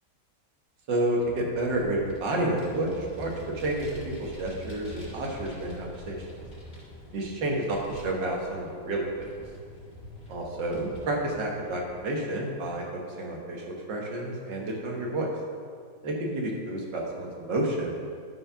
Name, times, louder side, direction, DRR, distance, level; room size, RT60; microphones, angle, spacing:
voice 1, 0.9-6.2 7.1-9.3 10.3-12.8 13.2-15.3 16.0-17.9, right 1 dB, 70° right, -1 dB, 2.0 m, -30 dB
Vehicle, 1.2-12.1, left 1 dB, 35° left, 1.9 m, -46 dB
10.5 x 4.7 x 5.6 m, 2.1 s
omnidirectional pair, 2.0 m